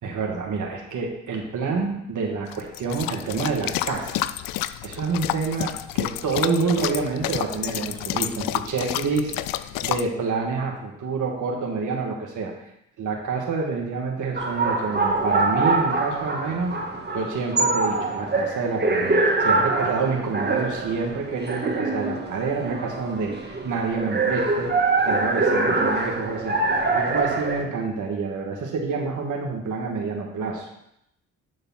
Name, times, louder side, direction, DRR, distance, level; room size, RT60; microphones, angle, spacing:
voice 1, 0.0-4.3 4.8-12.5 13.0-16.8 17.1-24.7 25.0-30.7, right 4 dB, 65° right, 0 dB, 1.8 m, -28 dB
sound 1, 2.5-10.1, left 14 dB, 80° left, 0.5 m, -30 dB
sound 2, 14.3-27.6, right 3 dB, 30° right, 2.0 m, -24 dB
11.0 x 4.0 x 5.7 m, 0.79 s
hypercardioid pair, 50°, 33 cm